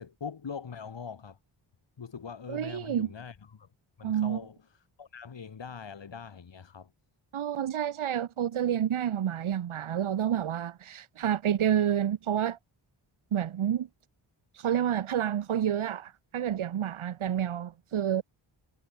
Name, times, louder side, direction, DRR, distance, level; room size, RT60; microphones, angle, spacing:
voice 1, 0.0-1.4 2.0-3.7 4.0-6.9, left 6 dB, 60° left, 6.1 m, -42 dB
voice 2, 2.5-3.1 4.0-4.4 7.3-12.6 13.3-13.9 14.5-18.2, right 10 dB, 80° right, 1.5 m, -29 dB
cardioid pair, 80°, 48 cm